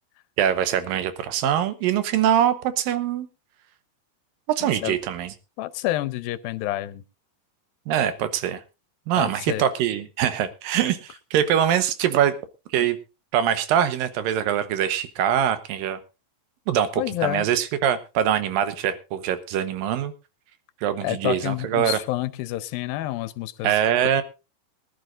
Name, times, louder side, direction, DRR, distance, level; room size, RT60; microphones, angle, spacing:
voice 1, 0.4-3.3 4.5-5.3 7.9-8.6 9.1-12.3 12.7-13.0 13.3-16.0 16.7-20.1 20.8-22.0 23.6-24.2, right 10 dB, 85° right, 11 dB, 2.7 m, -23 dB
voice 2, 4.6-5.0 5.6-7.0 9.2-9.6 17.0-17.5 21.0-23.8, left 15 dB, 90° left, 14 dB, 2.6 m, -28 dB
23.5 x 11.5 x 2.5 m, 0.29 s
omnidirectional pair, 4.1 m